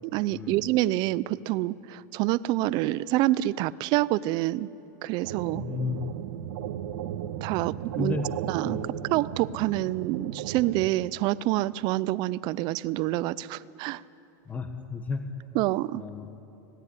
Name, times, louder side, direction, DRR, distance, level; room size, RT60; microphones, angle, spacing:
voice 1, 0.1-4.7 5.0-5.6 7.4-8.2 8.5-8.8 9.1-14.0 15.5-16.0, right 16 dB, 45° right, 19 dB, 0.5 m, -27 dB
sound 1, 5.2-10.9, right 10 dB, 75° right, 1.2 m, -36 dB
voice 2, 5.5-6.1 8.0-8.3 8.7-8.9 14.5-15.3 15.9-16.3, left 4 dB, 15° left, 6 dB, 1.2 m, -33 dB
18.0 x 16.5 x 10.0 m, 2.8 s
supercardioid pair, 135°, 10 cm